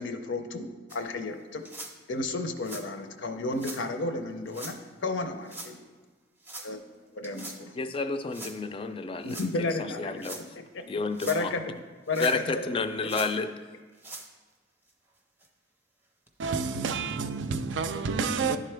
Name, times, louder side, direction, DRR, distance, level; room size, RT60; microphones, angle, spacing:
voice 1, 0.0-1.6 2.1-5.9 6.6-6.8 7.1-7.7 9.2-10.2 10.7-11.0 11.3-11.8 12.1-13.1, left 2 dB, 75° left, 0.6 m, -33 dB
sound 1, 0.9-1.0 1.6-1.9 2.6-2.9 3.5-3.8 4.5-4.8 5.5-5.7 6.4-6.7 7.2-7.6 8.3-8.6 9.2-9.5 10.1-10.4 11.0-11.4 12.1-12.6 13.0-13.3 13.9-14.3 14.9-15.0 15.4-15.5 16.3-16.4, right 2 dB, 10° right, 0.6 m, -42 dB
voice 2, 7.8-9.4 10.0-10.4 10.9-11.5 12.2-13.5, left 4 dB, 30° left, 0.3 m, -30 dB
voice 3, 16.4-18.6, right 5 dB, 70° right, 0.4 m, -29 dB
11.0 x 3.7 x 3.3 m
head